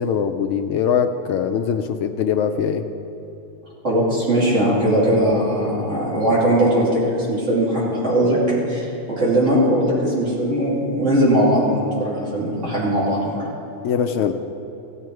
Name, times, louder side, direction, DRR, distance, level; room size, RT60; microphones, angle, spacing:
voice 1, 0.0-2.8 13.8-14.3, left 7 dB, 90° left, 5 dB, 0.9 m, -22 dB
voice 2, 3.8-8.4 8.7-13.4, right 1 dB, 90° right, -6 dB, 3.3 m, -19 dB
15.5 x 8.3 x 4.7 m, 2.8 s
omnidirectional pair, 1.2 m